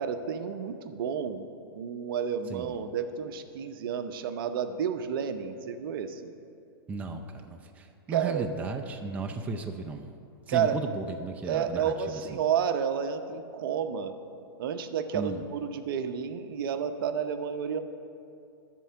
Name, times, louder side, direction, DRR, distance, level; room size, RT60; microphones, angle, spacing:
voice 1, 0.0-1.5 1.7-6.3 8.1-8.5 10.5-10.8 11.4-14.1 14.6-17.8, right 7 dB, 60° right, 9 dB, 0.7 m, -31 dB
voice 2, 6.9-10.1 10.5-12.4 15.1-15.4, right 4 dB, 10° right, 3 dB, 0.5 m, -35 dB
12.5 x 4.5 x 7.5 m, 2.6 s
hypercardioid pair, 130°, 13 cm